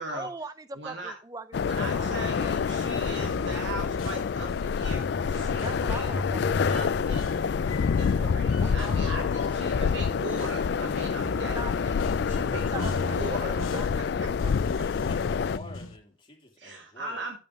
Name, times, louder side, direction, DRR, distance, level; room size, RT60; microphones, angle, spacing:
voice 1, 0.0-2.6 5.6-6.9 8.6-9.6 11.5-11.9 12.7-14.1 14.4-14.5, right 3 dB, 20° right, 0.4 m, -41 dB
voice 2, 0.8-1.1 1.6-5.0 5.3-7.4 8.0-11.6 11.9-12.0 12.3-14.4 16.6-17.4, right 2 dB, 60° right, 1.6 m, -39 dB
sound 1, 1.5-15.6, left 6 dB, 55° left, 0.3 m, -27 dB
sound 2, 3.2-16.0, left 2 dB, 90° left, 1.0 m, -37 dB
voice 3, 14.6-17.3, left 1 dB, 25° left, 2.5 m, -48 dB
11.0 x 6.9 x 3.0 m
head